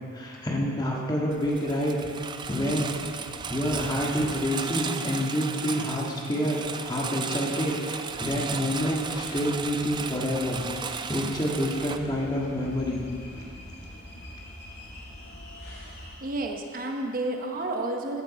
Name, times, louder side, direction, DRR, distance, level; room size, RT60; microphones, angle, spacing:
voice 1, 0.1-2.0 2.5-2.9 3.5-13.0, equal, 20° left, -3 dB, 1.7 m, -28 dB
Engine, 1.3-12.0, right 5 dB, 20° right, 0.4 m, -35 dB
sound 1, 8.1-16.2, equal, 55° left, 2.3 m, -45 dB
voice 2, 16.2-18.2, right 2 dB, 45° right, 2 dB, 0.9 m, -30 dB
14.5 x 9.6 x 4.2 m, 2.4 s
head